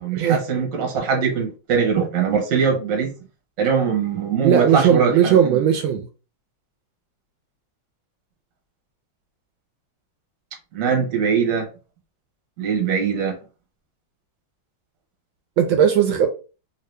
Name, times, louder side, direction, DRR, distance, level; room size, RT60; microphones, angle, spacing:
voice 1, 0.0-3.1 3.6-5.6 10.7-11.7 12.6-13.3, right 6 dB, 50° right, 1.2 m, -22 dB
voice 2, 4.4-6.1 15.6-16.3, right 8 dB, 80° right, 1.3 m, -17 dB
3.2 x 2.8 x 3.2 m
omnidirectional pair, 2.2 m